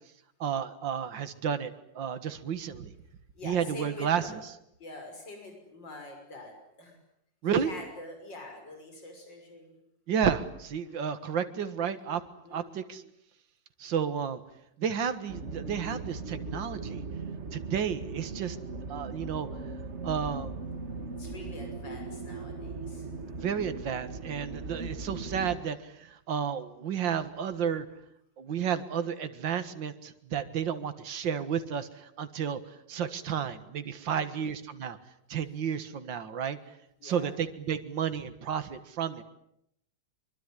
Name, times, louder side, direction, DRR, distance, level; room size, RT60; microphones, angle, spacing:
voice 1, 0.4-1.7 2.0-2.9 3.4-4.4 7.4-7.7 10.1-12.2 12.5-13.0 13.8-14.4 14.8-17.0 17.5-18.6 18.9-19.5 20.0-20.5 23.4-27.9 28.4-31.9 32.2-32.6 32.9-35.0 35.3-36.6 37.0-39.2, right 7 dB, 80° right, 10 dB, 2.3 m, -31 dB
voice 2, 3.3-4.3 4.8-7.0 7.5-9.8 10.8-11.3 12.4-12.8 21.2-23.3 34.1-34.5 37.0-37.3, left 2 dB, 75° left, 3 dB, 6.7 m, -45 dB
sound 1, 15.3-25.6, right 3 dB, 40° right, 2.0 m, -39 dB
24.5 x 24.0 x 10.0 m, 0.75 s
omnidirectional pair, 2.0 m